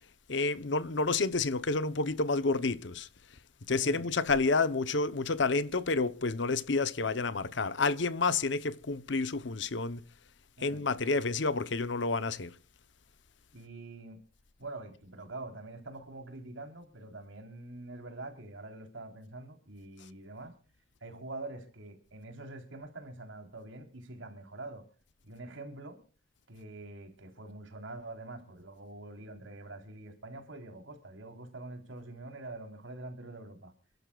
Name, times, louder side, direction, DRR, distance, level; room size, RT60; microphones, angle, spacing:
voice 1, 0.3-3.1 3.7-10.0 10.6-12.5, left 3 dB, 65° left, 0.9 m, -29 dB
voice 2, 13.5-14.2 14.6-20.5 21.0-24.9 25.2-26.0 26.5-33.7, right 2 dB, 85° right, 3.8 m, -45 dB
28.5 x 12.0 x 2.4 m
head